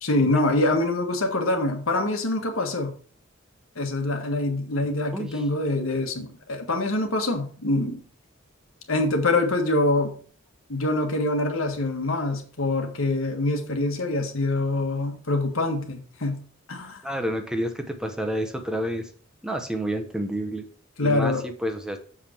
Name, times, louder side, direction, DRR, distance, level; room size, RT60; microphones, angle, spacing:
voice 1, 0.0-2.9 3.7-8.0 8.9-10.1 10.7-16.4 16.7-17.0 21.0-21.4, left 2 dB, 85° left, 1.6 m, -25 dB
voice 2, 4.8-5.4 17.0-19.1 19.4-20.6 21.0-22.0, right 1 dB, 5° right, 0.9 m, -29 dB
7.2 x 5.1 x 4.4 m
head